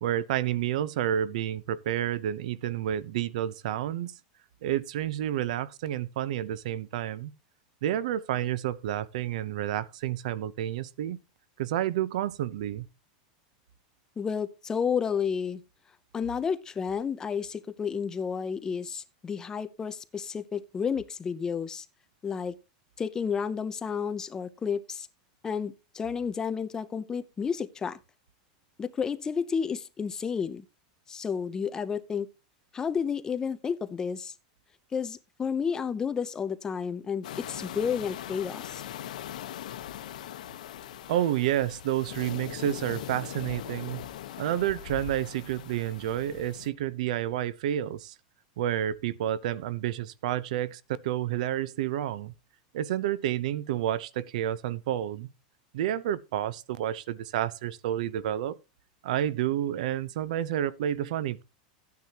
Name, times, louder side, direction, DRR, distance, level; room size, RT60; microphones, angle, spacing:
voice 1, 0.0-4.1 4.6-7.3 7.8-11.2 11.6-12.9 41.1-44.0 44.4-48.1 48.6-52.3 52.7-55.3 55.7-58.6 59.0-61.4, right 11 dB, 70° right, 0.8 m, -30 dB
voice 2, 14.2-15.6 16.1-21.9 22.2-22.6 23.0-25.1 25.4-28.0 28.8-30.7 31.1-32.3 32.7-34.3 34.9-38.8, left 6 dB, 15° left, 0.6 m, -31 dB
sound 1, 37.2-46.7, left 11 dB, 85° left, 1.0 m, -41 dB
13.5 x 9.5 x 2.9 m
supercardioid pair, 150°, 4 cm